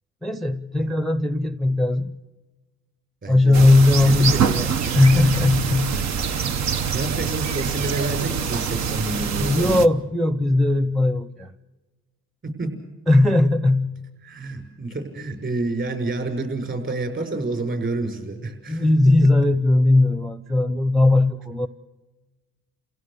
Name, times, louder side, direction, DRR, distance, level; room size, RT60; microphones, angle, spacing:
voice 1, 0.2-2.2 3.3-6.0 9.4-11.5 13.1-14.1 18.7-21.7, left 2 dB, ahead, 13 dB, 0.7 m, -18 dB
voice 2, 3.2-3.7 4.0-4.7 5.9-6.0 6.4-6.5 6.9-9.9 12.6-12.7 14.2-18.9, right 2 dB, 40° right, 5 dB, 6.6 m, -29 dB
sound 1, 3.5-9.9, right 7 dB, 65° right, 1.0 m, -25 dB
30.0 x 16.5 x 6.8 m, 1.2 s
cardioid pair, 90°, 30 cm